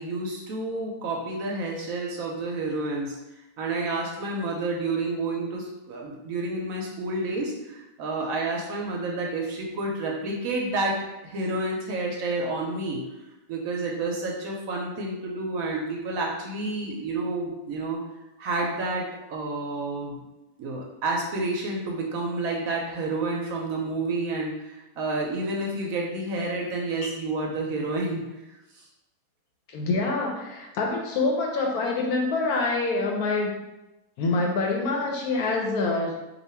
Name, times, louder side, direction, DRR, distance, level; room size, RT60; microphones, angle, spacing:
voice 1, 0.0-3.2 3.6-11.0 11.2-13.0 13.5-18.0 18.4-20.2 20.6-28.2 28.7-28.9, right 2 dB, 70° right, -1 dB, 0.9 m, -29 dB
voice 2, 29.7-33.6 34.2-36.2, left 3 dB, 70° left, 0 dB, 1.0 m, -26 dB
2.8 x 2.4 x 4.2 m, 0.97 s
omnidirectional pair, 1.8 m